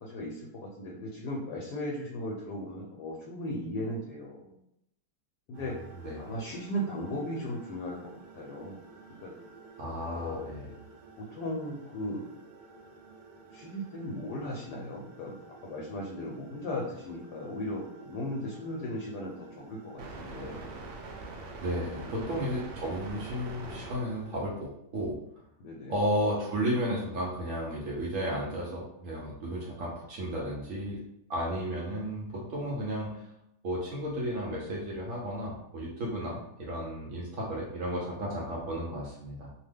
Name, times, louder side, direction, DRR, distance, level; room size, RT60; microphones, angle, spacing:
voice 1, 0.0-4.5 5.5-5.8 6.2-8.8 9.2-9.3 10.1-10.5 11.2-12.3 13.5-15.3 15.6-20.6 21.9-22.1 25.6-26.0 36.2-36.3, left 1 dB, 75° left, -2 dB, 1.1 m, -37 dB
sound 1, 5.5-24.4, right 3 dB, 80° right, 1.2 m, -48 dB
voice 2, 9.8-10.7 21.6-25.2 25.9-31.0 31.3-33.2 33.6-39.5, equal, 65° right, -4 dB, 0.8 m, -33 dB
2.8 x 2.1 x 3.4 m, 0.79 s
omnidirectional pair, 1.8 m